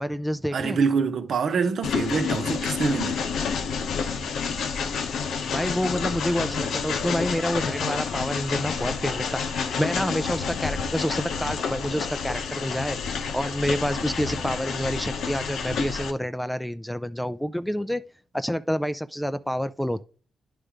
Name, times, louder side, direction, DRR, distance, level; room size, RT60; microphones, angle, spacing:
voice 1, 0.0-0.8 5.5-13.0 13.3-18.0 18.3-20.0, equal, 5° left, 0.4 m, -28 dB
voice 2, 0.5-3.5, right 5 dB, 65° right, 0.9 m, -26 dB
Train, 1.8-16.1, left 6 dB, 80° left, 0.9 m, -29 dB
9.9 x 3.3 x 5.0 m
cardioid pair, 90°, 0 cm